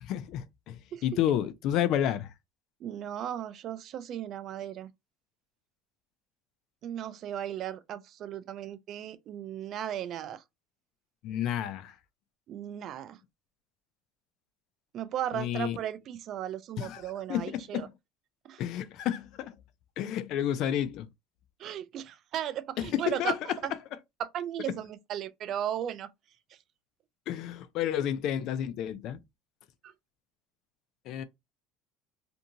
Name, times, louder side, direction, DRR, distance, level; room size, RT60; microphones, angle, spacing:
voice 1, 0.0-2.3 11.2-11.9 15.3-15.8 16.8-17.0 17.3-17.9 18.6-19.5 20.0-21.1 22.8-23.4 27.3-29.2 31.1-31.2, left 10 dB, 60° left, 0.4 m, -30 dB
voice 2, 2.8-4.9 6.8-10.4 12.5-13.2 14.9-17.9 18.4-18.6 21.6-23.4 23.6-23.7 24.2-26.1 29.8-29.9, right 10 dB, 45° right, 0.3 m, -36 dB
2.7 x 2.6 x 2.5 m
cardioid pair, 135°, 0 cm